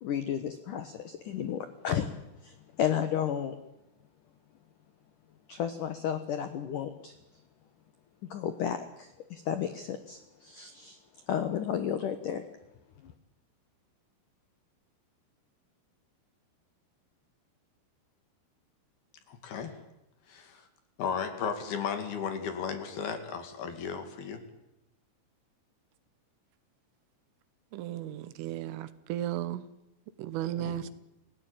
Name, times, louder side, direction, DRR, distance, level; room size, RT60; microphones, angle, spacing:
voice 1, 0.0-2.1 2.4-3.6 5.5-7.1 8.3-11.0 11.3-12.4 13.0-13.1, left 9 dB, 80° left, 9 dB, 1.8 m, -33 dB
voice 2, 19.3-19.8 20.3-20.6 21.0-24.4 30.6-30.9, left 6 dB, 55° left, 7 dB, 3.8 m, -35 dB
voice 3, 27.7-29.7 30.2-30.9, right 12 dB, 80° right, 14 dB, 3.6 m, -35 dB
29.5 x 17.5 x 9.0 m, 0.89 s
omnidirectional pair, 5.8 m